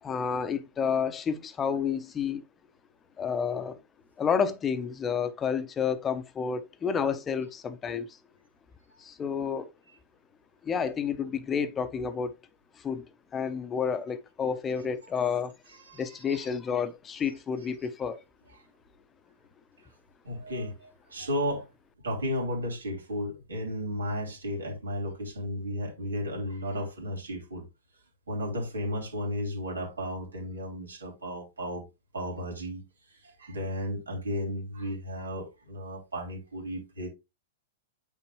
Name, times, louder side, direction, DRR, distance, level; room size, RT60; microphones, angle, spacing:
voice 1, 0.0-2.4 3.2-3.8 4.2-8.1 9.0-9.7 10.6-12.3 12.8-13.0 13.3-15.5 16.0-18.2, left 6 dB, 20° left, 0.9 m, -30 dB
voice 2, 15.7-16.5 18.5-18.6 20.2-21.7 22.0-27.7 28.3-31.8 32.1-32.8 33.1-37.1, equal, 85° right, 3.2 m, -34 dB
8.9 x 3.7 x 3.2 m
hypercardioid pair, 105°, 0 cm